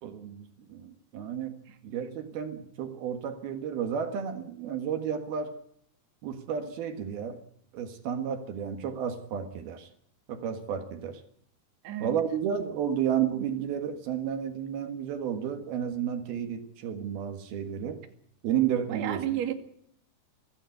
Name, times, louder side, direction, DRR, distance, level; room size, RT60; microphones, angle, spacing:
voice 1, 0.0-1.6 1.8-5.6 6.2-7.4 7.7-9.9 10.3-11.2 12.0-18.0 18.4-19.2, right 8 dB, 75° right, 7 dB, 3.5 m, -32 dB
voice 2, 11.8-12.2 18.9-19.5, right 11 dB, 50° right, 6 dB, 3.1 m, -32 dB
24.5 x 15.5 x 8.0 m, 0.70 s
omnidirectional pair, 4.5 m